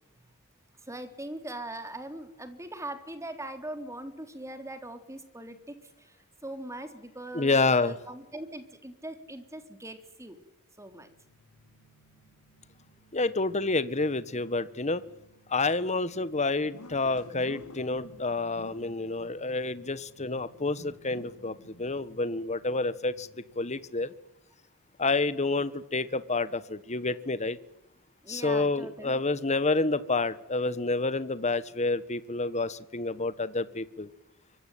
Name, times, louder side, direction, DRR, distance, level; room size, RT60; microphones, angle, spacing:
voice 1, 0.8-6.2 6.4-10.4 10.8-11.1 28.2-29.2, right 1 dB, 15° right, 8 dB, 3.8 m, -41 dB
voice 2, 7.3-8.0 13.1-15.0 15.5-24.1 25.0-27.6 28.3-34.1, left 3 dB, 30° left, 15 dB, 1.5 m, -29 dB
sound 1, 10.8-24.1, left 1 dB, 90° left, 5.3 m, -53 dB
25.0 x 24.5 x 9.4 m, 0.85 s
head